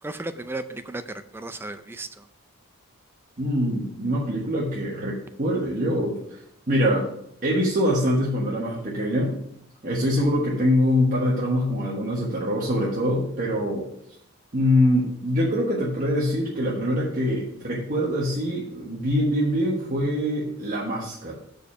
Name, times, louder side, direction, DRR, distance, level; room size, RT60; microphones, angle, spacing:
voice 1, 0.0-2.3, right 2 dB, 10° right, 10 dB, 0.3 m, -35 dB
voice 2, 3.4-6.2 6.7-7.1 7.4-9.3 9.8-13.9 14.5-21.3, equal, 40° right, -5 dB, 1.3 m, -24 dB
6.6 x 5.1 x 5.9 m, 0.74 s
head